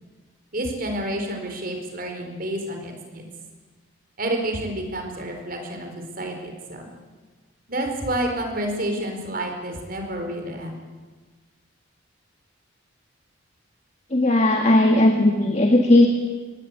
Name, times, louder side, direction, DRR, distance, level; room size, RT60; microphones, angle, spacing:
voice 1, 0.5-3.2 4.2-6.9 7.7-10.7, right 1 dB, 45° right, 3 dB, 4.7 m, -29 dB
voice 2, 14.1-16.1, left 1 dB, 35° left, 3 dB, 1.9 m, -17 dB
26.0 x 20.0 x 8.5 m, 1.4 s
head